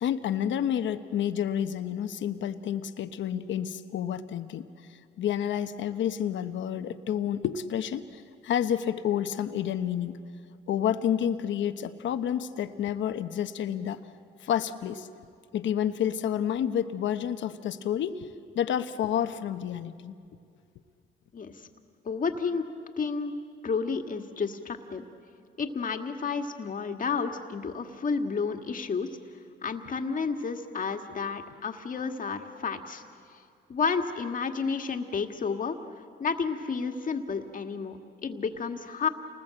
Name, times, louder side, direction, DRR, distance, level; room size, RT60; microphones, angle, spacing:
voice 1, 0.0-4.7 5.2-10.2 10.7-14.0 14.4-15.1 15.5-18.3 18.5-20.1, left 9 dB, 70° left, 9 dB, 1.0 m, -29 dB
voice 2, 22.0-22.7 23.0-23.3 23.6-25.1 25.6-29.2 29.6-33.0 33.3-33.4 33.7-35.8 36.2-39.1, left 5 dB, 40° left, 5 dB, 1.8 m, -31 dB
29.0 x 20.0 x 7.7 m, 2.3 s
cardioid pair, 90°, 20 cm